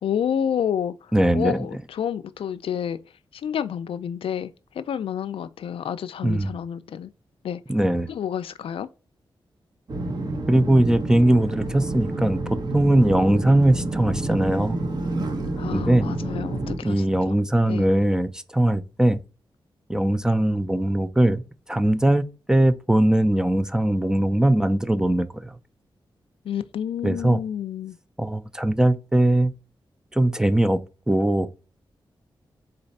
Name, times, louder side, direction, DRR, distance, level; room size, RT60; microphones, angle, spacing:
voice 1, 0.0-0.9 1.3-3.0 3.4-4.5 4.8-7.1 7.4-7.6 8.1-8.9 15.6-17.4 17.7-17.9 26.5-28.0, left 9 dB, 85° left, 0.4 m, -29 dB
voice 2, 1.1-1.7 6.2-6.6 7.7-8.1 10.5-12.4 12.7-14.8 15.7-16.1 16.8-19.2 19.9-21.4 21.7-25.5 27.0-27.4 28.2-29.5 30.1-30.8 31.1-31.5, right 1 dB, 5° right, 0.4 m, -20 dB
sound 1, 9.9-16.8, right 2 dB, 50° right, 0.9 m, -29 dB
3.9 x 3.3 x 4.1 m
wide cardioid pair, 95°, 9 cm